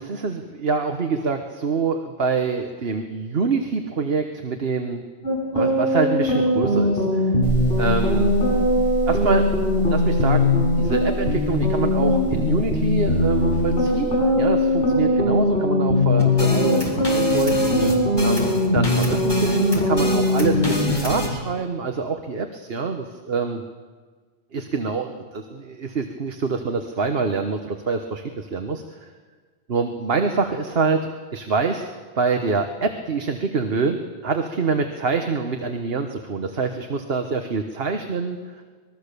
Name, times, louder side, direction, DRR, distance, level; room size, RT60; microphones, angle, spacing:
voice 1, 0.0-5.1 5.5-7.3 7.8-8.4 9.1-9.5 9.9-14.1 14.3-17.6 18.2-23.6 24.5-29.1 29.7-31.9 32.2-34.0 34.2-38.6, right 4 dB, 65° right, 6 dB, 1.5 m, -25 dB
sound 1, 5.2-20.9, left 1 dB, 60° left, 7.5 m, -20 dB
sound 2, 7.4-15.2, left 1 dB, 50° right, 7.2 m, -29 dB
sound 3, 16.2-21.3, equal, 20° left, 4.5 m, -27 dB
25.5 x 21.0 x 6.9 m, 1.5 s
omnidirectional pair, 1.1 m